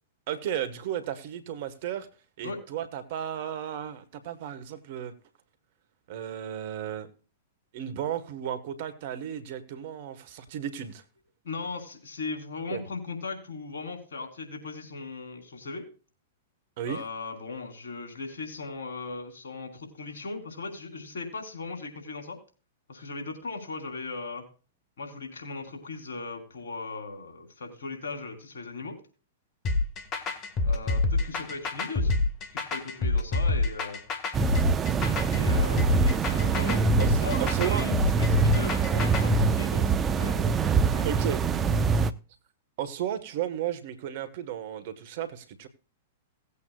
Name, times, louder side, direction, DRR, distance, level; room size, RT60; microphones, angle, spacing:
voice 1, 0.3-2.1 2.4-5.1 6.1-7.1 7.7-11.0 12.7-12.8 16.8-17.0 37.0-37.9 41.0-41.4 42.8-45.7, right 10 dB, 55° right, 11 dB, 1.6 m, -34 dB
voice 2, 11.4-15.8 16.9-22.4 22.9-24.4 25.0-29.0 30.6-32.2 32.5-34.0 35.3-36.8 37.1-41.4, left 3 dB, 75° left, 4 dB, 4.1 m, -38 dB
sound 1, 29.6-39.4, left 3 dB, 35° left, 1.9 m, -26 dB
sound 2, 34.3-42.1, right 6 dB, 20° right, 0.8 m, -25 dB
18.5 x 8.4 x 2.5 m, 0.36 s
hypercardioid pair, 110°, 0 cm